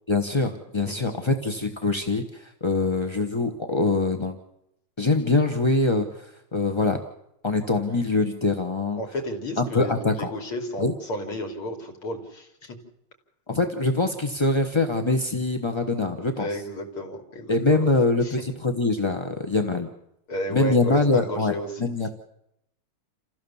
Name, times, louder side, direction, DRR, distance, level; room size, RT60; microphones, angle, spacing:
voice 1, 0.1-4.4 5.0-7.0 7.4-9.0 9.6-10.3 10.8-10.9 13.5-16.5 17.5-19.9 20.5-22.1, left 3 dB, 20° left, 5 dB, 0.7 m, -24 dB
voice 2, 0.9-1.3 9.0-12.8 16.4-17.9 18.2-18.4 20.3-21.9, equal, 80° left, 3 dB, 3.8 m, -33 dB
28.5 x 15.5 x 7.2 m, 0.82 s
omnidirectional pair, 2.4 m